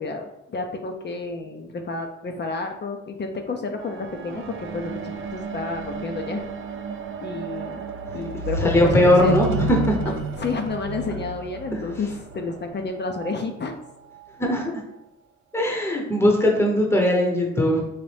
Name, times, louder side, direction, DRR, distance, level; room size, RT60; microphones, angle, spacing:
voice 1, 0.0-6.5 7.2-7.9 8.1-9.3 10.1-13.8, left 3 dB, 35° left, 4 dB, 0.5 m, -30 dB
sound 1, 3.8-13.3 14.1-14.2, right 3 dB, 45° right, 0.5 m, -32 dB
voice 2, 8.6-10.1 14.4-14.8 15.5-17.8, left 1 dB, 10° left, 0 dB, 0.8 m, -20 dB
4.1 x 2.5 x 3.3 m, 0.88 s
cardioid pair, 90°, 30 cm